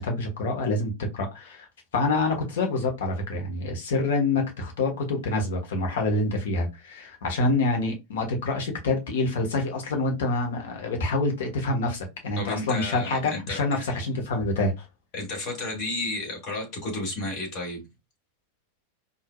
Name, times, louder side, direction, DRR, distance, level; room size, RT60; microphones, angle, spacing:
voice 1, 0.0-1.7 1.9-14.9, left 2 dB, 60° left, 1.3 m, -26 dB
voice 2, 12.4-14.0 15.1-17.8, left 2 dB, 35° left, 2.1 m, -32 dB
4.6 x 2.7 x 2.3 m
figure-of-eight pair, 90°, 0 cm